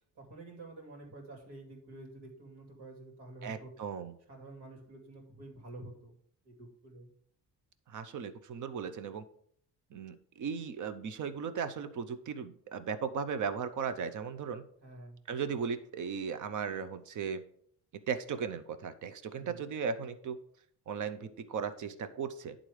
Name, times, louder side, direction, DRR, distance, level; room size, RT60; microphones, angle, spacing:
voice 1, 0.2-3.7 4.3-6.1 6.4-7.1 14.8-15.2 19.3-19.6, right 2 dB, 80° right, 0 dB, 2.7 m, -49 dB
voice 2, 3.4-4.1 7.9-9.2 9.9-14.6 15.3-17.4 18.1-20.4 20.9-22.5, right 6 dB, 50° right, 12 dB, 0.7 m, -37 dB
10.5 x 3.8 x 4.9 m, 0.62 s
cardioid pair, 180°, 40 cm